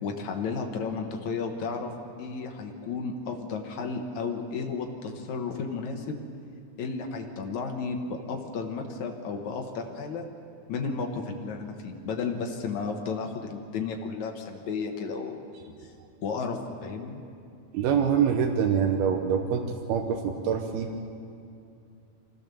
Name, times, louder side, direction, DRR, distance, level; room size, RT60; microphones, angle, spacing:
voice 1, 0.0-1.9 2.2-6.2 6.8-10.3 10.7-15.4 16.2-17.2, left 4 dB, 60° left, 3 dB, 2.2 m, -33 dB
voice 2, 17.7-20.9, right 7 dB, 90° right, 3 dB, 2.9 m, -25 dB
24.5 x 16.0 x 6.9 m, 2.5 s
omnidirectional pair, 4.3 m